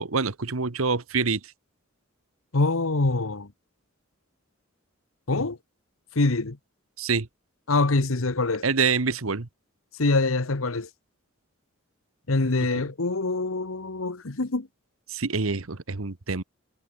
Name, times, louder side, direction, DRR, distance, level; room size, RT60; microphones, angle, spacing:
voice 1, 0.0-1.4 7.0-7.3 8.6-9.5 15.1-16.4, right 4 dB, 85° right, 1.3 m, -26 dB
voice 2, 2.5-3.5 5.3-5.6 6.1-6.6 7.7-8.6 10.0-10.9 12.3-14.7, left 3 dB, 80° left, 1.3 m, -24 dB
head